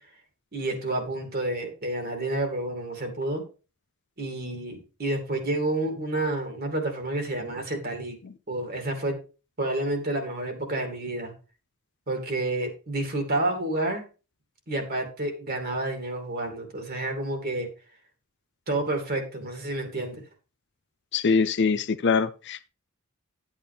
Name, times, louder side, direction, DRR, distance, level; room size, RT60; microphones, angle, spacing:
voice 1, 0.5-3.4 4.2-8.2 8.5-9.2 9.6-11.3 12.1-14.0 14.7-17.7 18.7-20.2, right 2 dB, 45° right, 2.7 m, -29 dB
voice 2, 21.1-22.7, left 5 dB, 55° left, 0.6 m, -23 dB
11.0 x 8.6 x 3.5 m
head